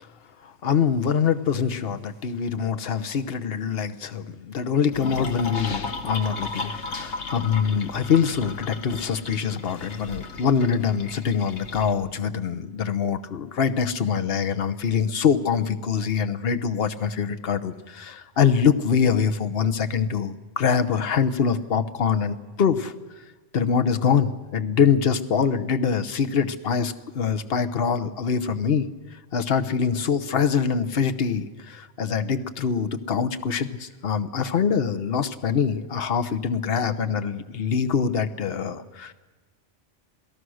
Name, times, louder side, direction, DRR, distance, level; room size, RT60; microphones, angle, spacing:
voice 1, 0.4-22.9 23.5-28.9 29.1-39.1, left 6 dB, 55° left, 11 dB, 1.1 m, -24 dB
sound 1, 4.9-11.9, left 3 dB, 70° left, 1.6 m, -35 dB
27.5 x 17.0 x 6.4 m, 1.2 s
omnidirectional pair, 1.2 m